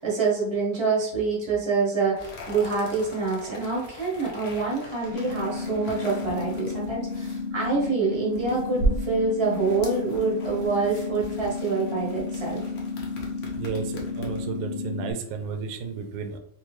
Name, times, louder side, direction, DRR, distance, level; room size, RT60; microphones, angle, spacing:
voice 1, 0.0-12.6, right 4 dB, 20° right, -4 dB, 0.9 m, -26 dB
sound 1, 2.2-14.6, right 1 dB, 55° left, 1.0 m, -37 dB
sound 2, 5.1-15.1, left 4 dB, 75° left, 0.7 m, -32 dB
voice 2, 13.5-16.4, right 6 dB, 75° right, 5 dB, 1.1 m, -33 dB
3.7 x 2.6 x 3.1 m, 0.72 s
omnidirectional pair, 1.8 m